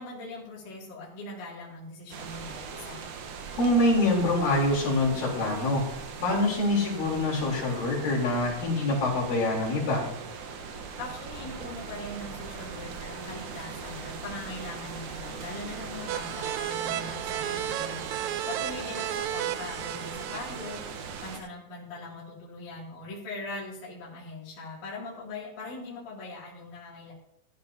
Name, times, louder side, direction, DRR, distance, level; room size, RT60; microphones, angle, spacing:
voice 1, 0.0-3.0 11.0-27.1, left 2 dB, 65° left, -6 dB, 4.1 m, -41 dB
sound 1, 2.1-21.4, right 5 dB, 70° right, 2.5 m, -40 dB
voice 2, 3.6-5.8 6.2-10.1, left 2 dB, 90° left, -3 dB, 5.4 m, -25 dB
sound 2, 16.1-21.5, right 11 dB, 85° right, 1.7 m, -34 dB
14.0 x 13.0 x 2.8 m, 0.79 s
omnidirectional pair, 3.9 m